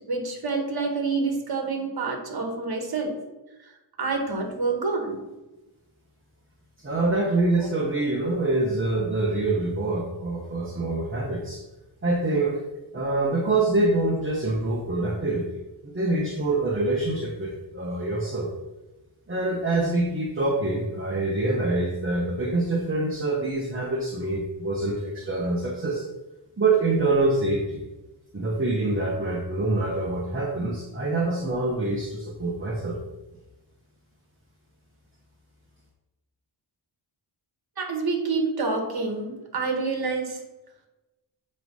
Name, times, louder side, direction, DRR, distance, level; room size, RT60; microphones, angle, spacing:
voice 1, 0.1-3.2 3.6-3.7 4.0-5.2 37.8-40.4, right 4 dB, 50° right, 2 dB, 1.4 m, -27 dB
voice 2, 6.8-11.6 12.0-12.6 12.9-18.5 19.3-26.0 26.6-27.9 28.3-33.0, right 2 dB, 25° right, -1 dB, 1.0 m, -25 dB
7.8 x 3.2 x 5.3 m, 1.0 s
wide cardioid pair, 105°, 48 cm